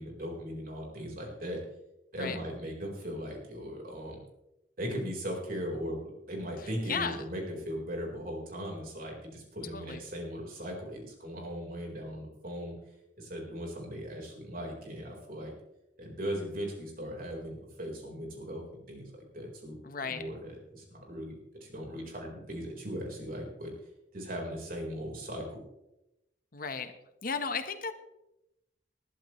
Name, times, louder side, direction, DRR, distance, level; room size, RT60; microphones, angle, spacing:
voice 1, 0.0-1.6 2.1-4.2 4.8-6.0 6.3-12.7 13.2-15.5 16.0-18.6 18.9-19.0 19.3-23.7 24.1-25.6, equal, 50° right, 0 dB, 4.3 m, -38 dB
voice 2, 6.9-7.3 9.7-10.0 19.8-20.2 26.5-26.9 27.2-27.9, left 5 dB, 50° left, 9 dB, 1.1 m, -34 dB
20.0 x 12.0 x 3.2 m, 0.90 s
head